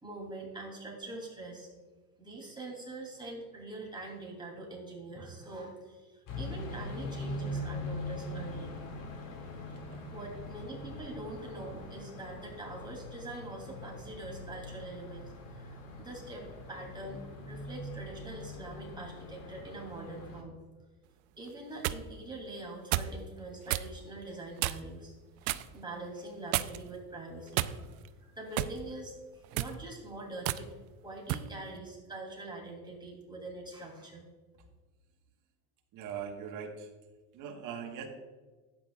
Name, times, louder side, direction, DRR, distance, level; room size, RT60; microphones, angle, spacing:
voice 1, 0.0-1.7 2.2-8.7 10.1-17.2 17.5-20.5 21.4-25.1 25.4-28.0 28.2-30.7 31.0-34.3, right 2 dB, 10° right, -1 dB, 2.8 m, -44 dB
sound 1, 6.3-20.4, left 1 dB, 50° left, 2.2 m, -42 dB
sound 2, 21.5-22.0 22.9-23.2 23.7-23.9 24.6-24.9 25.4-25.7 26.5-26.9 27.5-28.1 28.6-28.8 29.4-29.8 30.4-30.6 31.3-31.5, right 15 dB, 80° right, 0.6 m, -31 dB
voice 2, 35.9-36.9 37.3-38.1, right 7 dB, 50° right, 2 dB, 1.3 m, -41 dB
11.5 x 8.8 x 2.3 m, 1.3 s
supercardioid pair, 120°, 42 cm